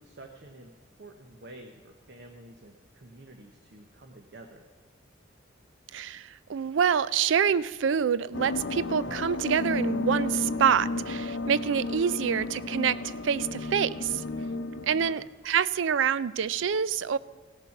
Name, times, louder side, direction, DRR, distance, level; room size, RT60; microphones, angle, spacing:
voice 1, 0.0-4.7 15.0-15.3, right 1 dB, 60° right, 4 dB, 0.9 m, -49 dB
voice 2, 5.9-14.2 14.8-17.2, right 7 dB, 80° right, 18 dB, 0.4 m, -26 dB
sound 1, 8.3-15.1, left 2 dB, 75° left, 0.7 m, -33 dB
16.5 x 6.8 x 5.8 m, 1.5 s
head